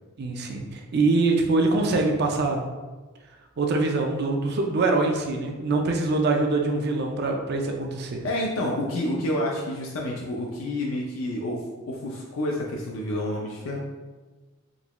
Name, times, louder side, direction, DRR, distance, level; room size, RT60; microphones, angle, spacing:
voice 1, 0.2-2.6 3.6-8.2, right 3 dB, 55° right, 2 dB, 0.4 m, -24 dB
voice 2, 8.2-13.8, left 1 dB, 85° left, -2 dB, 0.5 m, -29 dB
3.8 x 3.0 x 2.2 m, 1.3 s
head